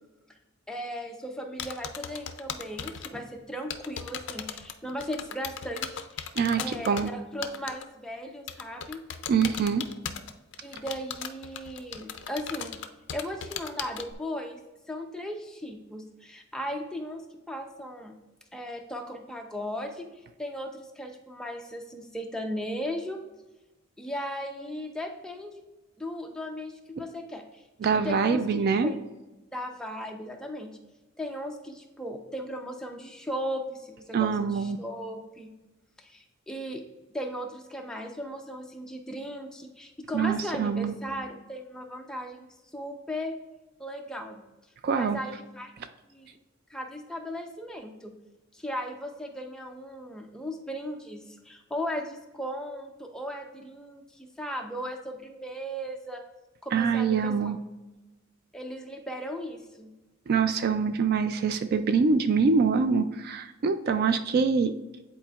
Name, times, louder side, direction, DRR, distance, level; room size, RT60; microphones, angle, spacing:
voice 1, 0.7-6.2 6.6-9.0 10.6-12.8 13.1-14.6 14.9-18.1 18.5-20.1 20.4-23.2 24.0-25.6 26.0-27.6 28.0-29.0 29.5-30.7 31.2-35.5 36.0-36.8 37.1-42.5 42.7-43.4 43.8-44.4 44.9-45.7 46.1-46.3 46.7-48.1 48.5-56.2 56.6-57.5 58.5-59.9, equal, 5° left, 2 dB, 0.6 m, -37 dB
sound 1, 1.6-3.1 3.6-7.1 7.4-7.8 8.5-14.1, left 8 dB, 60° left, 0.4 m, -36 dB
voice 2, 6.4-7.1 9.3-9.9 27.8-28.9 34.1-34.8 40.1-41.0 44.8-45.2 56.7-57.6 60.3-64.7, right 5 dB, 50° right, 10 dB, 0.3 m, -25 dB
10.0 x 4.2 x 2.3 m, 1.1 s
head